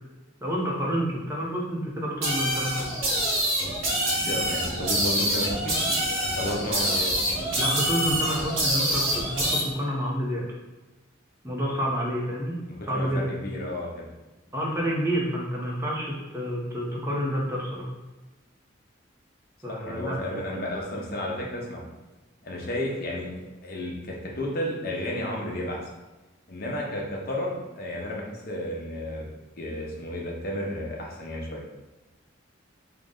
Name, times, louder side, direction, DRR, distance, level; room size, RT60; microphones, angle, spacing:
voice 1, 0.4-2.9 7.6-10.5 11.4-12.6 12.8-13.3 14.5-17.9 19.6-20.1, equal, 15° right, -3 dB, 0.6 m, -29 dB
sound 1, 2.2-9.6, equal, 85° right, 1.0 m, -26 dB
voice 2, 4.2-5.8 6.3-7.1 12.9-14.1 19.7-21.8 22.4-25.8 26.5-29.3 29.6-31.6, left 1 dB, 50° left, -2 dB, 0.8 m, -32 dB
3.9 x 2.1 x 3.7 m, 1.1 s
head